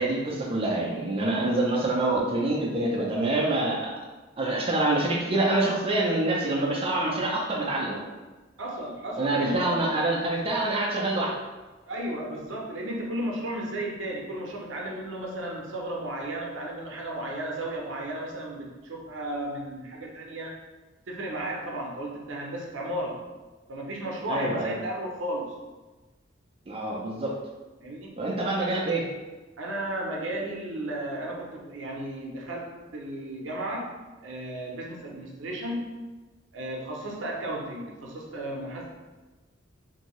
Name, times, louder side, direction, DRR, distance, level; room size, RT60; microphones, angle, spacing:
voice 1, 0.0-3.9 4.4-8.0 9.2-11.4 24.3-24.8 26.7-27.3 28.2-29.1, right 2 dB, 30° right, -3 dB, 0.4 m, -26 dB
voice 2, 8.6-9.8 11.8-20.5 21.1-23.2 23.7-25.5 27.8-28.1 29.6-33.9 34.2-35.9 36.5-38.9, right 1 dB, 75° right, -2 dB, 0.6 m, -34 dB
2.7 x 2.6 x 3.0 m, 1.2 s
head